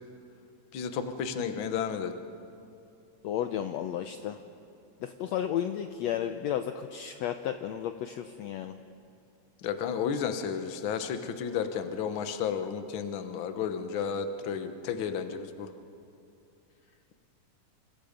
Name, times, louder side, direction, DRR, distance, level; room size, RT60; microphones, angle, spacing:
voice 1, 0.7-2.1 9.6-15.7, left 7 dB, 60° left, 7 dB, 1.3 m, -32 dB
voice 2, 3.2-4.4 5.0-8.7, left 10 dB, 80° left, 7 dB, 1.5 m, -33 dB
28.5 x 27.0 x 5.2 m, 2.6 s
omnidirectional pair, 3.9 m